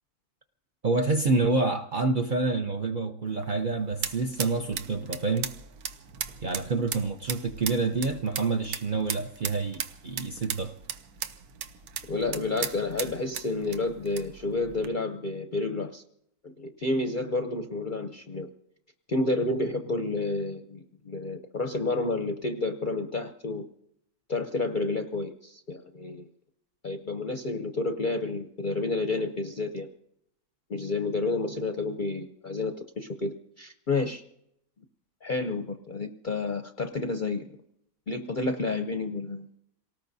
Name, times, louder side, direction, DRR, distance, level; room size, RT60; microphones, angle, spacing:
voice 1, 0.8-5.5 6.4-10.7, right 3 dB, 50° right, 0.6 m, -27 dB
sound 1, 3.3-14.9, right 8 dB, 80° right, 1.3 m, -38 dB
voice 2, 12.1-16.0 16.4-18.5 19.1-23.7 24.3-26.2 26.8-29.9 30.7-34.2 35.2-37.4 38.1-39.5, left 3 dB, 50° left, 0.6 m, -30 dB
28.0 x 18.5 x 2.7 m
omnidirectional pair, 1.6 m